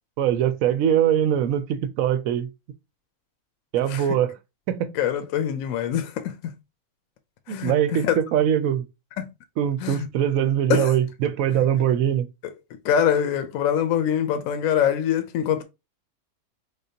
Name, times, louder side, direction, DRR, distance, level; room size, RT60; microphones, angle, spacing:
voice 1, 0.2-2.5 3.7-4.3 4.7-4.9 7.5-8.9 9.6-12.3, right 10 dB, 75° right, 0.9 m, -22 dB
voice 2, 4.9-6.5 7.5-8.2 9.2-9.3 9.8-10.1 10.7-10.9 11.5-11.7 12.8-15.6, left 9 dB, 70° left, 1.0 m, -24 dB
4.0 x 3.4 x 2.7 m
omnidirectional pair, 1.5 m